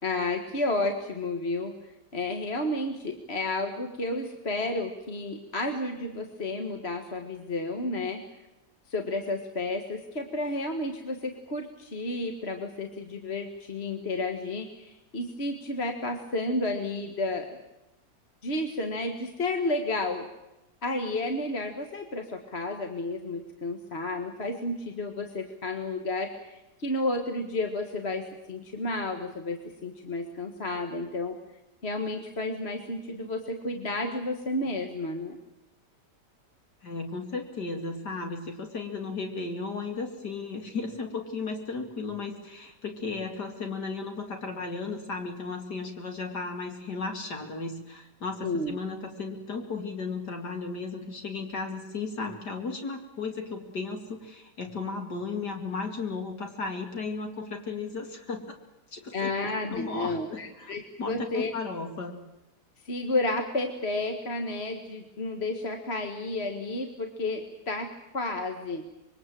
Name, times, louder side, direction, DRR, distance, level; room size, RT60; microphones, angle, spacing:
voice 1, 0.0-1.7 2.1-8.2 8.9-17.5 18.4-20.3 20.8-31.4 31.8-35.4 48.4-48.8 59.1-61.5 62.8-67.9 68.1-68.8, left 2 dB, 40° left, 4 dB, 2.0 m, -31 dB
voice 2, 36.8-58.5 58.9-59.3 59.7-62.2, left 4 dB, 75° left, 3 dB, 3.1 m, -35 dB
25.5 x 22.5 x 7.7 m, 0.96 s
omnidirectional pair, 1.8 m